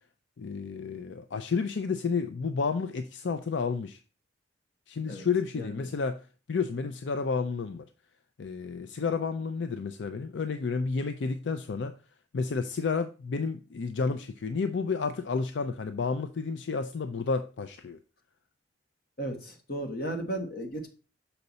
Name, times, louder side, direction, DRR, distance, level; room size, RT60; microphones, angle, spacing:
voice 1, 0.4-4.0 4.9-7.9 8.4-11.9 12.3-18.0, left 5 dB, 80° left, 0.5 m, -31 dB
voice 2, 5.5-5.9 19.2-20.9, right 1 dB, 55° left, 1.4 m, -35 dB
6.6 x 5.8 x 4.0 m
head